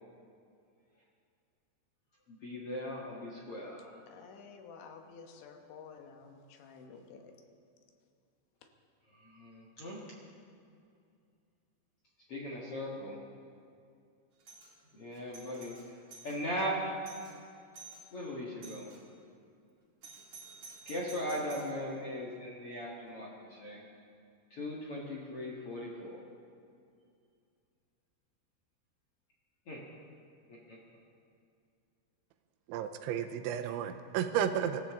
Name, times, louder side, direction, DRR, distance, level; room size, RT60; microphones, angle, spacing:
voice 1, 2.3-3.9 9.2-10.0 12.3-13.2 14.9-15.8 16.2-16.9 18.1-18.9 20.8-23.8 24.5-26.2 29.7-29.8 30.5-30.8, equal, 55° left, -4 dB, 1.6 m, -38 dB
voice 2, 4.1-7.4, left 5 dB, 80° left, 4 dB, 3.4 m, -51 dB
Doorbell, 14.4-14.7 15.1-16.4 16.8-16.9 17.0-17.3 17.7-18.0 18.6-19.0 20.0-21.8, right 4 dB, 40° right, 3.1 m, -51 dB
voice 3, 32.7-34.9, right 9 dB, 90° right, 8 dB, 3.1 m, -33 dB
25.5 x 14.0 x 3.7 m, 2.4 s
omnidirectional pair, 5.3 m